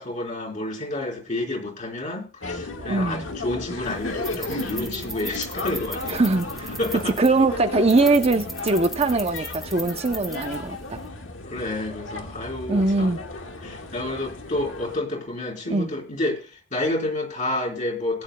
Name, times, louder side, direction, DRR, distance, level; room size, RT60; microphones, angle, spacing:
voice 1, 0.0-6.2 6.8-7.1 11.5-13.1 13.6-18.2, left 2 dB, 40° left, 3.9 m, -29 dB
sound 1, 2.4-15.0, left 2 dB, 80° left, 1.7 m, -35 dB
voice 2, 2.9-3.3 6.1-11.0 12.7-13.2 15.7-15.9, right 3 dB, 35° right, 0.7 m, -22 dB
sound 2, 3.8-11.1, right 1 dB, ahead, 1.6 m, -39 dB
20.0 x 9.8 x 2.3 m
head